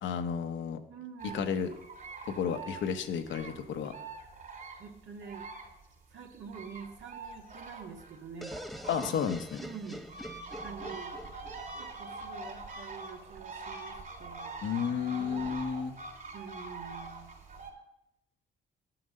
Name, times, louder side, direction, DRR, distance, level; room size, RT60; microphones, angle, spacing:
voice 1, 0.0-0.8 1.3-1.7 2.3-3.9 8.9-9.6 14.6-15.9, left 7 dB, 75° left, 7 dB, 0.9 m, -32 dB
voice 2, 0.9-1.6 4.8-5.5 6.1-8.6 9.6-10.0 10.6-11.2 11.7-15.6 16.3-17.3, right 6 dB, 70° right, 2 dB, 1.6 m, -46 dB
sound 1, 1.2-5.9 6.2-17.7, right 3 dB, 45° right, 3.2 m, -44 dB
sound 2, 8.4-12.2, equal, ahead, 0.6 m, -44 dB
11.0 x 5.9 x 6.5 m, 0.85 s
cardioid pair, 90°, 20 cm